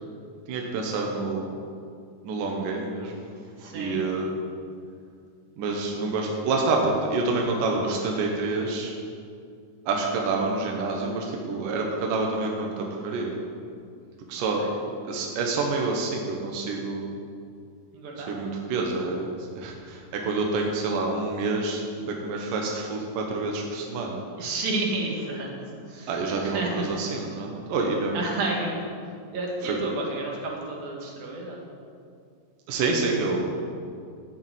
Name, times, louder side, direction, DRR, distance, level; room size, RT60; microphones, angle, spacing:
voice 1, 0.5-1.6 2.2-3.1 3.7-4.3 5.6-8.9 9.9-13.4 14.3-14.6 15.0-17.1 18.2-24.2 26.1-28.2 29.6-29.8 32.7-33.6, right 3 dB, 75° right, 0 dB, 2.8 m, -27 dB
voice 2, 3.6-4.0 14.4-14.7 17.9-18.3 24.4-25.6 25.9-26.1 26.4-27.0 28.1-28.8 29.3-31.6, right 2 dB, 90° right, -1 dB, 3.8 m, -31 dB
13.0 x 7.2 x 8.1 m, 2.4 s
omnidirectional pair, 4.0 m